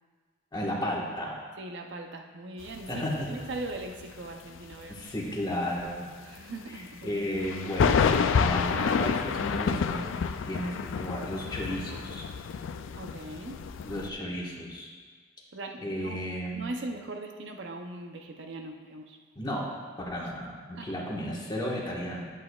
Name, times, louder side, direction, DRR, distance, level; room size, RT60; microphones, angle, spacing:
voice 1, 0.5-1.4 2.9-3.3 4.9-6.1 6.7-10.1 10.5-12.2 13.8-14.9 15.8-16.7 19.3-19.7 20.1-22.3, equal, 20° left, -4 dB, 1.3 m, -33 dB
voice 2, 1.6-5.0 6.2-7.4 13.0-13.7 14.2-14.3 15.5-16.2 16.5-19.2 20.2-20.3 20.8-21.0, right 2 dB, 65° right, 4 dB, 0.6 m, -40 dB
sound 1, 2.6-4.3 4.6-5.0 5.3-5.4 5.8-5.9 7.4-14.1, left 6 dB, 75° left, 0.3 m, -29 dB
10.5 x 8.3 x 2.3 m, 1.5 s
head